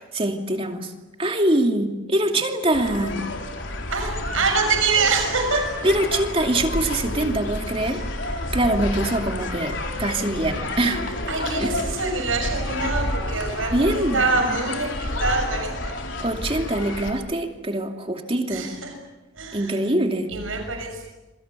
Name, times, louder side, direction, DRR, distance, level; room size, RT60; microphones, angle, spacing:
voice 1, 0.1-0.9 1.2-3.2 5.8-8.0 8.5-11.0 11.6-11.7 13.7-14.2 16.2-18.7 19.5-20.3, right 1 dB, 30° right, 4 dB, 2.6 m, -23 dB
sound 1, 2.7-17.1, left 1 dB, 65° left, 4.1 m, -30 dB
voice 2, 3.9-5.6 7.8-8.0 8.4-8.6 11.3-15.7 18.5-18.9 19.3-19.8 20.3-21.1, right 4 dB, 90° right, 3 dB, 6.5 m, -25 dB
27.5 x 24.0 x 8.4 m, 1.1 s
head